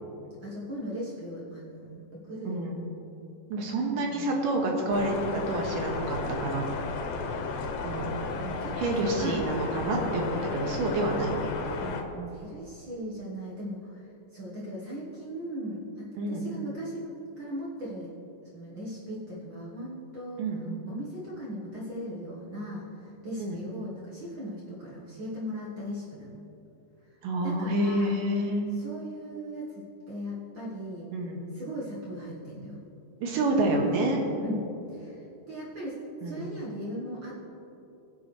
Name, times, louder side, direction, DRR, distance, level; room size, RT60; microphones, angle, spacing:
voice 1, 0.4-2.7 4.0-4.5 8.3-9.4 11.8-14.0 14.3-18.1 18.5-20.5 20.8-26.4 27.4-28.1 28.7-31.1 31.5-32.8 34.0-34.1 34.4-37.4, equal, 55° right, -6 dB, 1.3 m, -38 dB
voice 2, 2.4-2.8 3.5-6.7 7.8-8.2 8.8-11.5 16.2-16.5 20.4-20.8 23.4-23.6 27.2-28.6 31.1-31.5 33.2-34.2 36.2-36.5, right 1 dB, 75° right, 0 dB, 2.9 m, -28 dB
sound 1, 4.9-12.0, left 4 dB, 80° left, 2.7 m, -34 dB
20.5 x 7.0 x 3.2 m, 2.9 s
omnidirectional pair, 4.0 m